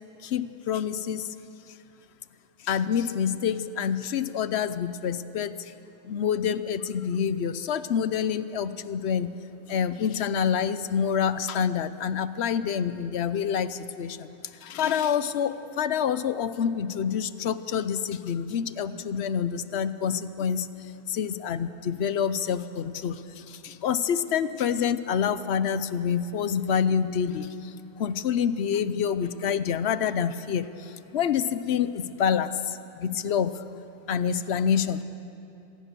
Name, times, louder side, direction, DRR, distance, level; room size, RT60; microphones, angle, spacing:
voice 1, 0.2-1.3 2.6-5.7 6.0-9.3 9.7-14.3 14.6-20.7 21.1-27.7 28.0-33.6 34.1-35.0, left 7 dB, 60° left, 14 dB, 0.9 m, -27 dB
25.5 x 17.5 x 6.8 m, 2.8 s
omnidirectional pair, 1.4 m